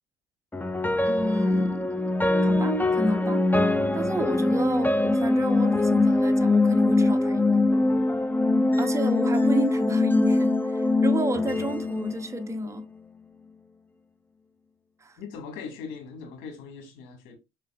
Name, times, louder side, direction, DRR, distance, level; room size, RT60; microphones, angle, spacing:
sound 1, 0.5-12.8, left 2 dB, 10° left, 0.5 m, -23 dB
voice 1, 1.0-2.0 2.4-3.4 3.9-7.6 8.8-12.8 15.0-15.2, right 1 dB, 15° right, 0.8 m, -30 dB
voice 2, 15.2-17.4, left 5 dB, 80° left, 1.4 m, -40 dB
4.7 x 3.3 x 2.2 m
supercardioid pair, 75°, 20 cm